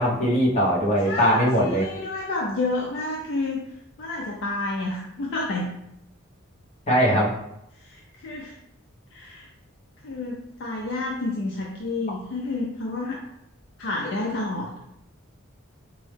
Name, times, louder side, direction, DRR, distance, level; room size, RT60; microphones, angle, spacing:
voice 1, 0.0-1.8 6.9-7.3, equal, 30° left, -4 dB, 0.9 m, -20 dB
voice 2, 1.0-3.6 4.0-5.7 7.8-8.5 9.1-9.5 10.0-13.2 13.8-14.8, left 2 dB, 55° left, -2 dB, 0.4 m, -30 dB
4.4 x 2.1 x 3.2 m, 0.81 s
head